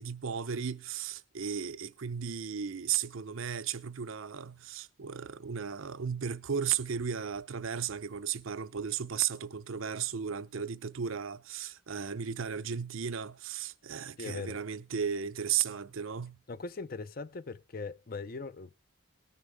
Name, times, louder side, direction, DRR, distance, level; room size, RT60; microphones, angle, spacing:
voice 1, 0.0-16.4, right 7 dB, 70° right, 0.6 m, -35 dB
voice 2, 14.2-14.6 16.5-18.8, left 4 dB, 45° left, 0.5 m, -40 dB
20.0 x 6.7 x 3.5 m
head